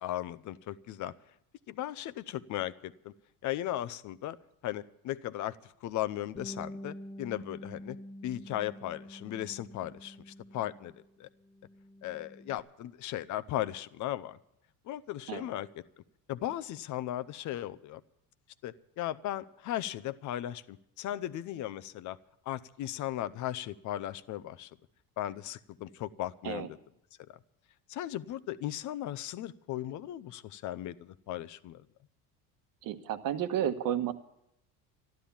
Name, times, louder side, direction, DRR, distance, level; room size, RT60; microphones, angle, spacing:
voice 1, 0.0-1.1 1.7-3.1 3.4-4.4 4.6-5.6 5.8-8.0 8.2-10.9 11.2-11.3 12.0-14.4 14.9-15.7 16.3-18.0 18.6-22.2 22.5-24.7 25.2-26.7 27.9-31.8, left 13 dB, 50° left, 14 dB, 0.7 m, -37 dB
Bass guitar, 6.4-11.1 11.4-12.6, equal, 25° left, 1.5 m, -47 dB
voice 2, 32.8-34.1, right 10 dB, 55° right, 9 dB, 1.3 m, -32 dB
13.5 x 12.0 x 7.1 m, 0.78 s
cardioid pair, 135°, 39 cm